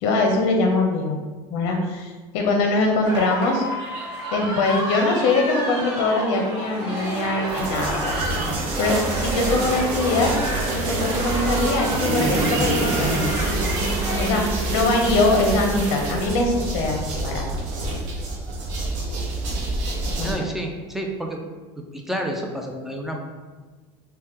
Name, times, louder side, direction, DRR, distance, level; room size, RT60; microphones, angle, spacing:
voice 1, 0.0-1.2 1.5-3.6 4.3-8.2 8.8-10.3 10.7-13.3 14.2-14.4 14.7-17.5 20.2-20.3, left 2 dB, 65° left, 2 dB, 0.5 m, -22 dB
sound 1, 3.0-14.4, right 1 dB, 30° right, 1.4 m, -31 dB
sound 2, 5.3-14.0, right 1 dB, 75° right, 1.0 m, -38 dB
sound 3, 7.5-20.3, right 2 dB, 55° right, 0.7 m, -26 dB
voice 2, 20.2-21.4 21.8-23.3, right 1 dB, ahead, 1 dB, 0.3 m, -30 dB
2.8 x 2.1 x 3.3 m, 1.3 s
supercardioid pair, 130°, 15 cm